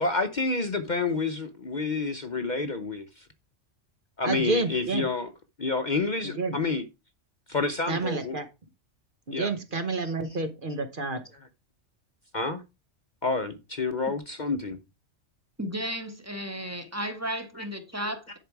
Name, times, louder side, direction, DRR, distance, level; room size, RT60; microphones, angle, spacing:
voice 1, 0.0-3.3 4.2-5.3 5.6-6.9 7.5-8.4 9.3-9.5 10.0-10.1 12.3-12.6 13.2-14.8 17.0-17.7 18.0-18.1, left 3 dB, 45° left, 0.8 m, -29 dB
voice 2, 4.2-5.1 6.2-6.6 7.9-8.5 9.3-11.2, right 3 dB, 45° right, 1.1 m, -29 dB
voice 3, 15.6-18.4, equal, 15° right, 1.3 m, -34 dB
10.5 x 4.7 x 4.6 m
omnidirectional pair, 1.3 m